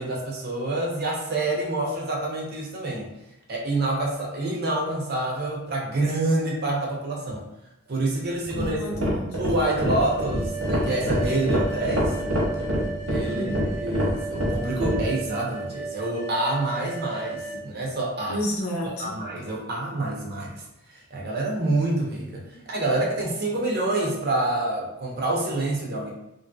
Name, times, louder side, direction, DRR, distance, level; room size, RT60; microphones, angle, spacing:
voice 1, 0.0-3.1 3.5-7.4 7.9-8.8 9.4-12.2 13.1-13.5 13.8-18.4 18.8-20.6 20.9-26.1, right 2 dB, 45° right, -2 dB, 0.6 m, -27 dB
sound 1, 8.4-15.1, equal, 85° right, 1.1 m, -26 dB
voice 2, 8.6-9.4 13.2-13.6 18.3-19.1, equal, 85° left, 0 dB, 0.7 m, -31 dB
sound 2, 10.0-17.6, right 4 dB, 15° left, 0.5 m, -35 dB
3.3 x 2.6 x 2.2 m, 0.87 s
head